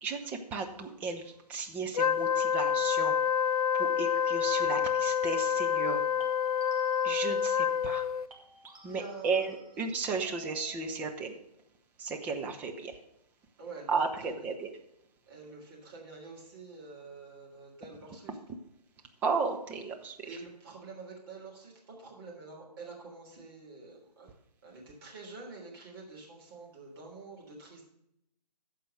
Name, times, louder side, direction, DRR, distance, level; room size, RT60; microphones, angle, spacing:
voice 1, 0.0-3.1 3.7-6.0 7.0-8.1 8.8-11.4 12.0-13.0 13.9-14.7 19.2-20.2, right 4 dB, 5° right, 3 dB, 0.5 m, -34 dB
sound 1, 1.2-1.5 6.2-8.0 8.3-11.2, right 3 dB, 55° right, 2.4 m, -55 dB
Wind instrument woodwind instrument, 1.9-8.3, left 8 dB, 65° left, 0.4 m, -28 dB
voice 2, 8.9-9.5 13.6-14.5 15.3-18.4 20.2-24.3 24.6-27.9, right 3 dB, 35° right, -2 dB, 3.3 m, -47 dB
13.5 x 4.7 x 6.6 m, 0.81 s
figure-of-eight pair, 140°, 21 cm